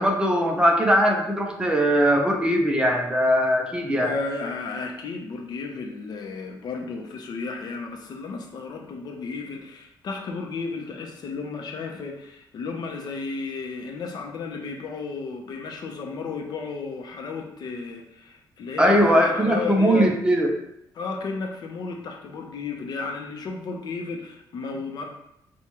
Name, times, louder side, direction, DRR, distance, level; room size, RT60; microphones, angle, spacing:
voice 1, 0.0-4.1 18.8-20.5, equal, 10° right, 1 dB, 0.6 m, -20 dB
voice 2, 3.9-20.1 20.9-25.1, left 4 dB, 60° left, 2 dB, 0.6 m, -33 dB
5.9 x 2.3 x 3.0 m, 0.80 s
cardioid pair, 115°, 8 cm